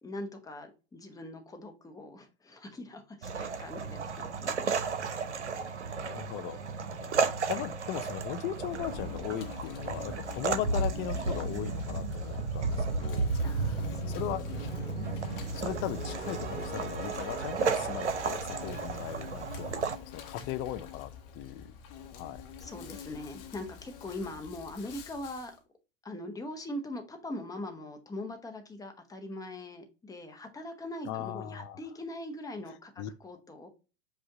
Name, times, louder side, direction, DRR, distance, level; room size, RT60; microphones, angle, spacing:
voice 1, 0.0-4.5 13.4-14.2 14.5-15.1 22.6-25.5 26.0-33.7, left 1 dB, 10° left, 0.9 m, -42 dB
sound 1, 3.2-20.0, right 4 dB, 90° right, 0.7 m, -33 dB
voice 2, 6.0-6.6 7.0-14.5 15.5-21.7 22.1-22.4 31.0-31.8 33.0-33.1, left 11 dB, 35° left, 0.5 m, -38 dB
Insect, 8.5-25.6, left 9 dB, 55° left, 1.0 m, -45 dB
sound 2, 14.5-20.0, right 4 dB, 30° right, 1.8 m, -43 dB
5.1 x 2.5 x 3.7 m
hypercardioid pair, 100°, 34 cm